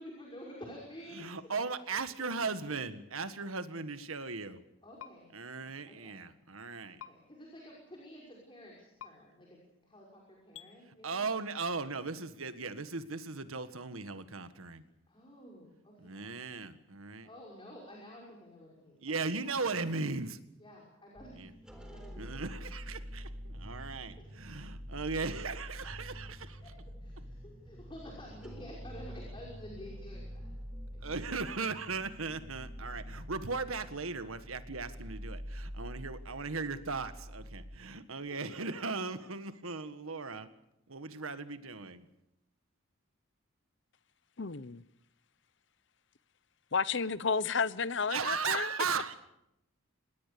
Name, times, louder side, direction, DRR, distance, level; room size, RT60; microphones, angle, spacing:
voice 1, 0.0-1.4 4.8-5.3 5.9-6.2 7.1-11.3 15.1-16.7 17.0-19.6 20.6-21.5 21.8-22.6 24.2-24.3 26.6-26.7 27.0-30.5 30.9-31.2 34.9-35.0, equal, 25° left, 5.7 m, -51 dB
voice 2, 1.1-4.6 5.3-7.0 11.0-14.8 16.0-17.3 19.0-20.4 21.3-21.5 22.1-26.6 31.0-40.5 40.9-42.1 48.1-49.2, right 4 dB, 85° right, 1.7 m, -37 dB
sound 1, 5.0-5.1 7.0-7.1 9.0-9.1 10.5-10.7, left 9 dB, 80° left, 1.5 m, -46 dB
sound 2, 21.1-37.8 38.2-38.3 38.7-38.8, equal, 5° right, 3.9 m, -46 dB
voice 3, 44.4-44.8 46.7-48.7, left 5 dB, 60° left, 0.8 m, -32 dB
26.5 x 20.0 x 7.0 m
head